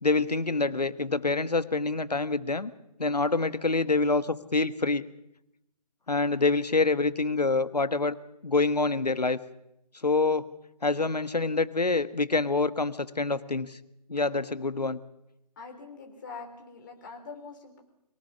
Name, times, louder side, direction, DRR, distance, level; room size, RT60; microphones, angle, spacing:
voice 1, 0.0-2.7 3.0-5.0 6.1-8.1 8.4-9.4 10.0-10.4 10.8-13.8 14.1-15.0, left 3 dB, 70° left, 14 dB, 1.4 m, -26 dB
voice 2, 15.6-17.8, left 4 dB, 30° left, 3 dB, 3.8 m, -44 dB
23.0 x 18.0 x 7.0 m, 0.84 s
figure-of-eight pair, 150°, 21 cm